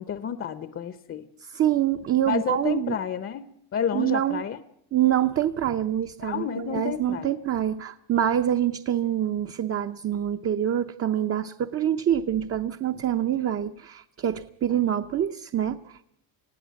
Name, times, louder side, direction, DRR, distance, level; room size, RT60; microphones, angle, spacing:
voice 1, 0.0-1.2 2.3-4.6 6.2-7.3, left 8 dB, 30° left, 13 dB, 0.8 m, -30 dB
voice 2, 1.4-3.0 3.9-4.4 4.9-16.2, right 10 dB, 35° right, 8 dB, 0.7 m, -26 dB
20.5 x 16.0 x 9.2 m, 0.76 s
cardioid pair, 155°, 43 cm